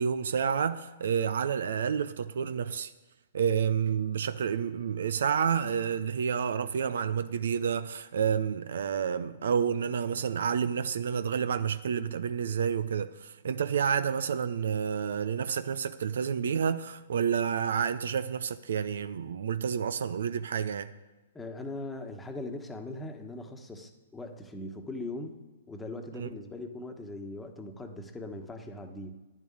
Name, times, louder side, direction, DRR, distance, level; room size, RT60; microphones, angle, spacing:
voice 1, 0.0-2.9 3.3-20.9 26.1-26.3, right 7 dB, 70° right, 0.5 m, -29 dB
voice 2, 21.3-25.4 25.7-29.1, left 2 dB, 10° left, 1.3 m, -40 dB
10.0 x 7.3 x 8.7 m
hypercardioid pair, 125°, 0 cm